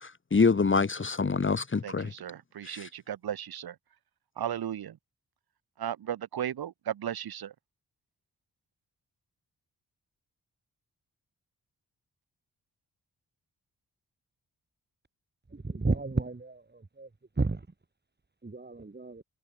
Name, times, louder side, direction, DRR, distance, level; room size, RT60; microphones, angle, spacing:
voice 1, 0.0-2.1 2.6-2.9, left 4 dB, 30° left, 1.2 m, -26 dB
voice 2, 1.8-3.8 4.4-5.0 5.8-7.5, right 10 dB, 75° right, 1.4 m, -35 dB
voice 3, 15.5-17.1 17.4-17.6 18.4-19.2, right 3 dB, 25° right, 3.0 m, -32 dB
cardioid pair, 50°, 37 cm